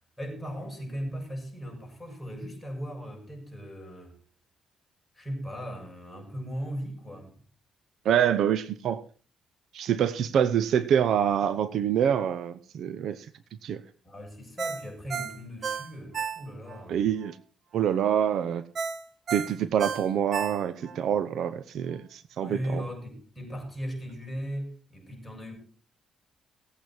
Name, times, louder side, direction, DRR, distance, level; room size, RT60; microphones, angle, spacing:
voice 1, 0.2-4.1 5.1-7.4 14.0-17.1 22.4-25.6, equal, 5° left, 6.7 m, -37 dB
voice 2, 8.0-9.0 9.7-13.2 13.6-13.8 16.9-17.3 17.7-18.6 19.3-22.8, right 9 dB, 70° right, 0.8 m, -26 dB
Ringtone, 14.6-16.8 17.2-17.3 18.8-21.0 21.4-21.5, right 6 dB, 50° right, 1.2 m, -33 dB
18.0 x 8.5 x 4.5 m
cardioid pair, 90°, 0 cm